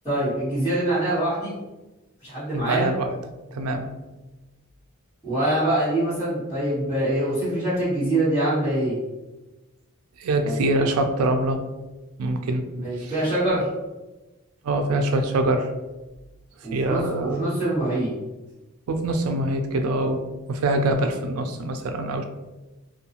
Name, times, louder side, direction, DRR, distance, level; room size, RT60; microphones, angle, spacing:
voice 1, 0.0-1.5 2.2-2.9 5.2-9.0 10.4-10.6 12.8-13.7 16.6-18.1, right 1 dB, 15° left, -16 dB, 1.4 m, -24 dB
voice 2, 2.5-3.1 3.5-3.9 10.2-11.6 12.2-12.6 13.0-13.1 14.6-15.7 16.7-17.5 18.9-20.2 20.5-22.2, right 2 dB, 75° right, 6 dB, 0.4 m, -24 dB
2.6 x 2.3 x 2.8 m, 1.1 s
head